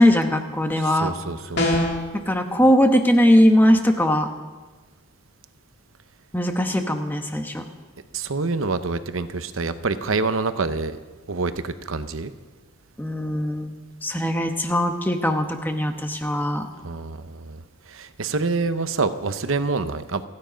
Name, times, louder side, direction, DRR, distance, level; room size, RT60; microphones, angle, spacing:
voice 1, 0.0-1.1 2.1-4.3 6.3-7.6 13.0-13.7 14.0-16.7, equal, 10° left, 5 dB, 1.0 m, -20 dB
voice 2, 0.8-1.7 8.1-11.0 11.3-12.3 16.8-20.3, right 3 dB, 75° right, 11 dB, 0.8 m, -27 dB
sound 1, 1.6-2.1, left 1 dB, 50° left, 2.7 m, -21 dB
28.5 x 9.8 x 5.2 m, 1.3 s
head